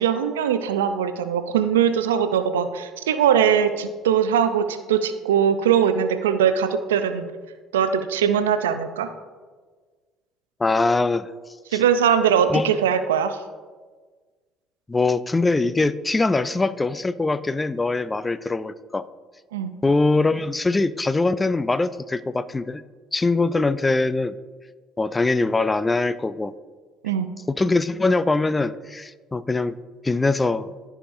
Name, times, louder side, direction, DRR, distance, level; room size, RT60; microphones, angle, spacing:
voice 1, 0.0-7.3 7.7-9.1 11.7-13.4 19.5-19.7 27.0-27.3, right 8 dB, 85° right, 10 dB, 0.4 m, -21 dB
voice 2, 10.6-11.3 11.7-11.8 12.5-12.8 14.9-19.0 19.8-22.8 23.1-24.4 25.0-26.5 27.5-29.8 30.0-30.7, left 3 dB, 20° left, 15 dB, 0.4 m, -22 dB
14.5 x 4.9 x 2.6 m, 1.5 s
hypercardioid pair, 55°, 0 cm